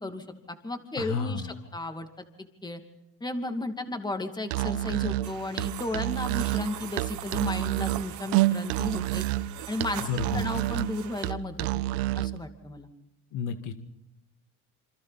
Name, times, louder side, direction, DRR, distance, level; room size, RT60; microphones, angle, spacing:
voice 1, 0.0-2.2 2.6-2.8 3.2-9.3 9.7-11.7 12.2-12.9, left 2 dB, 10° left, 6 dB, 2.5 m, -34 dB
voice 2, 1.0-1.5 10.0-10.4 13.3-13.7, left 6 dB, 65° left, 8 dB, 1.9 m, -31 dB
Musical instrument, 4.4-12.4, right 16 dB, 85° right, 0.8 m, -29 dB
sound 1, 5.2-11.3, right 13 dB, 60° right, 1.3 m, -41 dB
27.5 x 26.5 x 4.2 m, 0.89 s
supercardioid pair, 100°, 33 cm